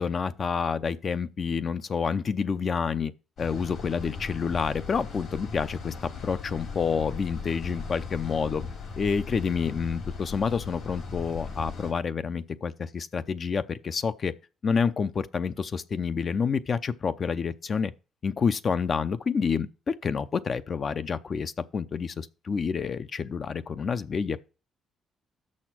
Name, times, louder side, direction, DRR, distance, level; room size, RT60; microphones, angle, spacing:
voice 1, 0.0-3.1 3.4-5.9 6.2-8.7 8.9-14.3 14.6-17.9 18.2-24.4, left 6 dB, 45° left, 0.6 m, -28 dB
sound 1, 3.4-11.9, left 5 dB, 70° left, 2.9 m, -38 dB
6.8 x 6.5 x 5.9 m
cardioid pair, 90°, 0 cm